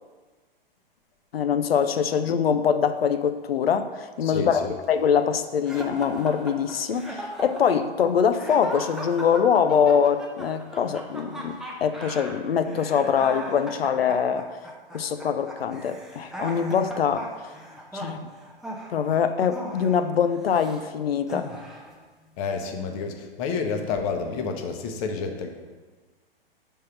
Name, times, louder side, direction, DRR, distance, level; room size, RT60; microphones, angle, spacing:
voice 1, 1.3-14.5 14.9-17.3 17.9-18.3 18.9-21.5, left 7 dB, 85° left, 10 dB, 0.5 m, -23 dB
voice 2, 4.2-4.7 22.4-25.5, left 5 dB, 40° left, 5 dB, 0.8 m, -29 dB
sound 1, 5.7-20.8 21.3-22.0, right 1 dB, ahead, 0.5 m, -38 dB
5.5 x 3.6 x 5.6 m, 1.4 s
hypercardioid pair, 115°, 29 cm